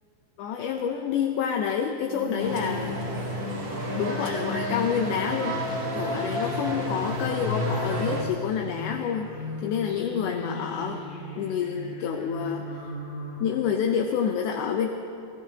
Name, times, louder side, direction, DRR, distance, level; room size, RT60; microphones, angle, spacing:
voice 1, 0.4-3.0 4.0-9.3 9.6-11.0 11.4-12.6 13.4-14.9, left 7 dB, 75° left, 3 dB, 2.1 m, -28 dB
sound 1, 2.1-13.4, left 4 dB, 60° left, 4.2 m, -36 dB
sound 2, 2.4-8.2, right 1 dB, 35° right, 2.7 m, -31 dB
29.0 x 16.5 x 2.9 m, 2.8 s
omnidirectional pair, 4.1 m